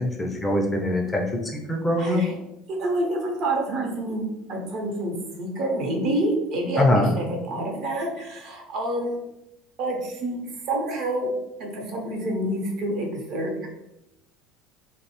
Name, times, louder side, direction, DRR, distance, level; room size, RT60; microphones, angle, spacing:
voice 1, 0.0-2.2 6.8-7.2, left 1 dB, 15° left, 0 dB, 0.4 m, -23 dB
voice 2, 2.0-2.4 2.7-9.2 9.8-10.4 10.7-11.3 11.6-13.7, right 1 dB, 55° right, 0 dB, 0.6 m, -28 dB
2.6 x 2.0 x 2.8 m, 0.88 s
cardioid pair, 135°, 0 cm